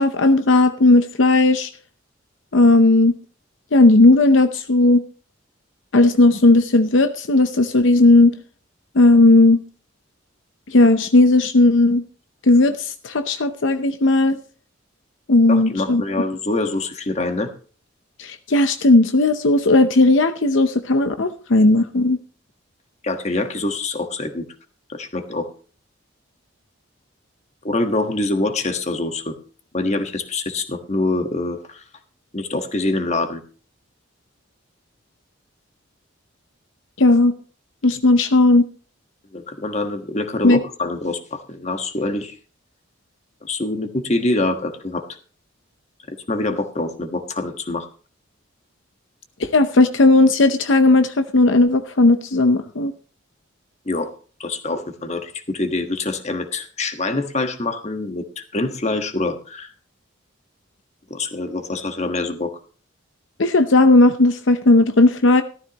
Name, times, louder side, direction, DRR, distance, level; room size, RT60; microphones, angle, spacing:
voice 1, 0.0-1.7 2.5-3.2 3.7-5.0 5.9-8.4 8.9-9.6 10.7-12.0 12.4-14.4 15.3-16.0 18.2-22.2 37.0-37.3 37.8-38.7 40.4-40.6 49.4-52.9 63.4-65.4, left 2 dB, 70° left, 9 dB, 0.8 m, -15 dB
voice 2, 15.5-17.5 23.0-24.5 24.9-25.5 27.6-29.3 29.7-31.8 32.3-33.4 39.3-42.3 43.4-45.0 46.1-47.9 53.8-54.1 54.4-59.7 61.1-62.5, left 2 dB, 35° left, 7 dB, 1.4 m, -25 dB
15.0 x 13.5 x 2.9 m, 0.40 s
head